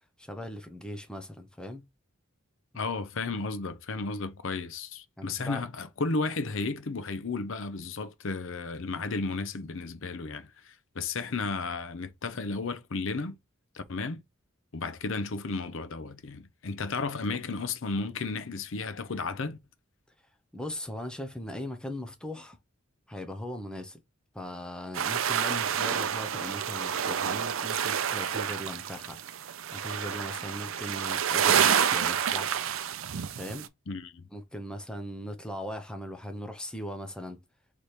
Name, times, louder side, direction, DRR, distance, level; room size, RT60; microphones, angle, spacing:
voice 1, 0.2-1.8 5.2-5.7 20.5-22.6 23.1-24.0 24.3-29.2 29.7-32.6 33.4-33.7 34.3-37.4, left 1 dB, 5° left, 0.7 m, -39 dB
voice 2, 2.7-13.4 13.7-14.2 14.7-19.6 33.9-34.3, left 3 dB, 65° left, 0.6 m, -33 dB
sound 1, 24.9-33.7, right 8 dB, 70° right, 0.5 m, -28 dB
3.3 x 3.2 x 4.2 m
head